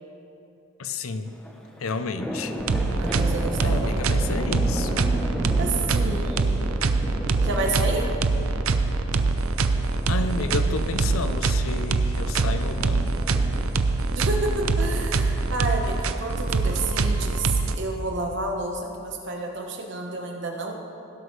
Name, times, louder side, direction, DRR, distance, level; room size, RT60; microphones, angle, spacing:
voice 1, 0.8-1.3 1.8-2.6 3.6-5.1 10.1-13.2, left 3 dB, 90° left, 9 dB, 0.6 m, -31 dB
sound 1, 1.3-17.6, equal, 5° left, 0.8 m, -36 dB
sound 2, 2.6-17.7, right 3 dB, 90° right, 0.5 m, -24 dB
voice 2, 3.0-4.1 5.6-6.6 7.4-8.1 14.1-20.7, right 2 dB, 60° right, 2 dB, 1.3 m, -30 dB
17.0 x 7.9 x 3.2 m, 2.7 s
head